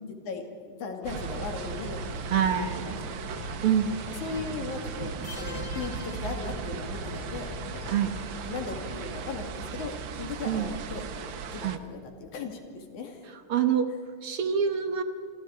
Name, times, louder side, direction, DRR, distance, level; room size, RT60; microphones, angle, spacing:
voice 1, 0.3-3.0 4.2-7.8 8.4-13.3, left 4 dB, 65° left, 4 dB, 3.8 m, -38 dB
sound 1, 1.0-9.3, left 4 dB, 85° left, 3.5 m, -44 dB
sound 2, 1.0-11.8, right 6 dB, 80° right, 1.0 m, -37 dB
voice 2, 2.3-3.0 3.6-4.0 7.9-8.1 10.4-10.7 11.6-11.8 13.5-13.9 14.2-15.0, right 8 dB, 60° right, 8 dB, 1.5 m, -26 dB
sound 3, 5.2-7.2, left 4 dB, 20° left, 2.3 m, -45 dB
29.0 x 25.0 x 4.8 m, 2.3 s
omnidirectional pair, 3.7 m